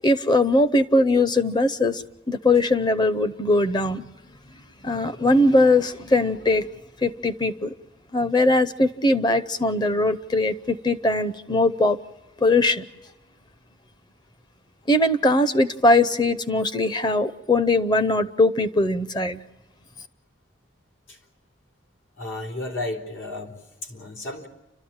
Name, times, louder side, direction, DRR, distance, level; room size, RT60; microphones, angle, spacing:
voice 1, 0.0-4.1 4.8-6.7 7.0-7.7 8.1-12.0 12.4-12.8 14.9-19.4, left 2 dB, 20° left, 13 dB, 0.7 m, -20 dB
voice 2, 22.2-24.5, left 2 dB, 75° left, -1 dB, 3.5 m, -33 dB
30.0 x 13.0 x 8.8 m, 1.1 s
head